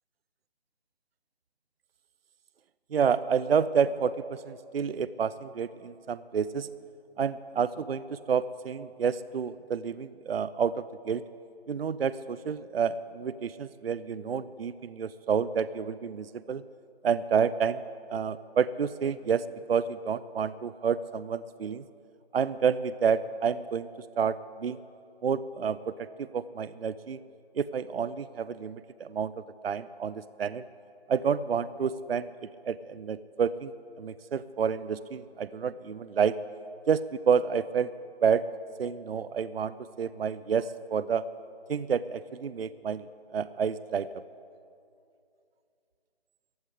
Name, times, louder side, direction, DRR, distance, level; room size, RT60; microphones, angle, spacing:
voice 1, 2.9-6.7 7.2-11.2 11.7-16.6 17.0-17.8 18.1-21.8 22.3-23.9 24.2-24.8 25.2-25.9 26.2-27.2 27.5-29.3 29.6-30.6 31.1-32.3 32.7-33.7 34.0-36.3 36.9-37.9 38.2-38.4 38.8-41.2 41.7-43.1 43.3-44.1, right 6 dB, 65° right, 16 dB, 0.5 m, -29 dB
15.0 x 8.2 x 9.9 m, 2.5 s
hypercardioid pair, 180°, 32 cm